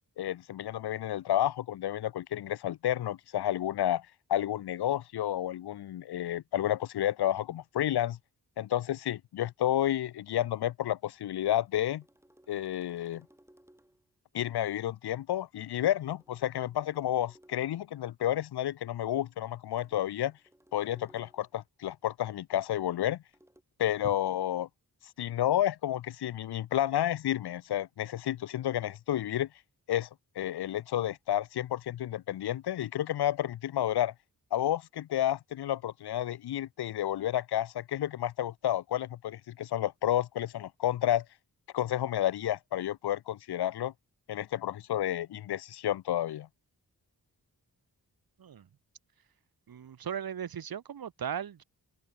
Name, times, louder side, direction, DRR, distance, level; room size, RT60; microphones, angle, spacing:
voice 1, 0.2-8.2 8.6-12.0 12.5-13.3 14.3-20.3 20.7-23.2 23.8-24.7 25.2-29.5 29.9-30.1 30.4-34.1 34.5-41.2 41.7-43.9 44.3-46.5, left 12 dB, 90° left, 0.6 m, -31 dB
sound 1, 11.3-14.1 16.1-17.8 19.8-21.6 23.3-23.6, right 1 dB, 5° right, 3.5 m, -62 dB
voice 2, 49.7-51.6, right 8 dB, 70° right, 1.0 m, -37 dB
wide cardioid pair, 120°, 38 cm